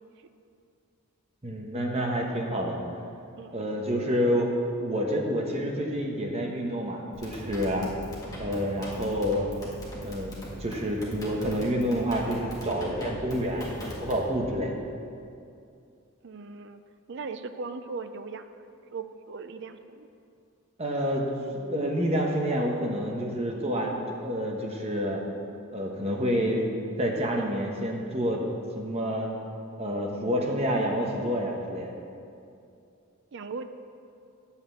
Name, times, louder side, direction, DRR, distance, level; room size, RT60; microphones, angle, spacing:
voice 1, 1.4-2.8 3.5-4.5 4.8-7.9 8.4-9.5 10.0-10.3 10.6-14.8 20.8-21.3 21.5-25.2 25.7-26.7 27.0-28.4 28.7-29.3 29.8-31.9, equal, 30° right, 0 dB, 1.1 m, -28 dB
sound 1, 7.1-14.4, equal, 15° left, 1.7 m, -40 dB
voice 2, 16.2-16.8 17.1-18.5 18.9-20.1 33.3-33.7, right 4 dB, 50° right, 9 dB, 0.5 m, -38 dB
9.1 x 5.7 x 7.7 m, 2.5 s
head